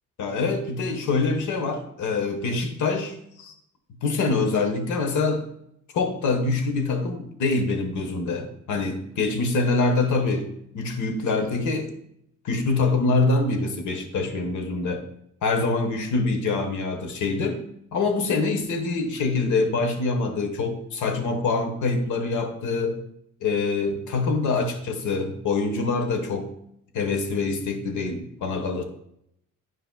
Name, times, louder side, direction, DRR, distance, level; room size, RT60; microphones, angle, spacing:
voice 1, 0.2-3.5 4.0-5.4 5.9-11.9 12.4-15.0 15.4-17.6 17.9-23.0 23.4-26.5 26.9-28.8, left 3 dB, 75° left, 5 dB, 1.2 m, -25 dB
10.5 x 4.7 x 2.2 m, 0.74 s
cardioid pair, 90°, 30 cm